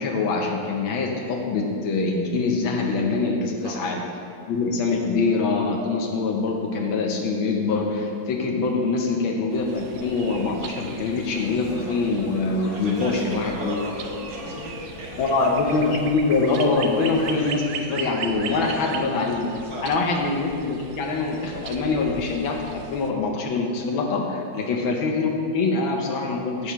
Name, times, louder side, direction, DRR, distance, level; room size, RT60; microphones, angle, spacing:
voice 1, 0.0-4.0 4.5-13.8 15.2-19.5 19.8-26.7, left 3 dB, 80° left, 1 dB, 1.6 m, -24 dB
sound 1, 9.5-17.4, left 3 dB, 55° left, 0.9 m, -40 dB
sound 2, 9.7-23.1, right 6 dB, 75° right, 0.8 m, -39 dB
voice 2, 12.7-15.6 17.3-17.5 18.5-18.9 19.6-20.2 24.5-24.7, right 2 dB, 55° right, -2 dB, 1.5 m, -37 dB
8.8 x 4.8 x 6.8 m, 2.4 s
omnidirectional pair, 2.2 m